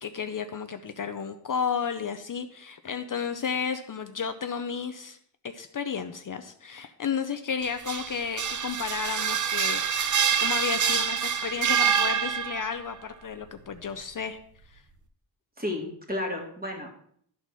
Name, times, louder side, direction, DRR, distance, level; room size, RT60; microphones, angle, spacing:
voice 1, 0.0-5.2 5.4-10.0 10.4-14.4 14.7-14.8, left 6 dB, 50° left, 8 dB, 0.6 m, -32 dB
sound 1, 7.6-12.8, right 7 dB, 45° right, 0.6 m, -26 dB
voice 2, 15.6-16.9, left 1 dB, 20° right, 1 dB, 2.2 m, -32 dB
11.5 x 4.1 x 6.0 m, 0.65 s
wide cardioid pair, 105°, 42 cm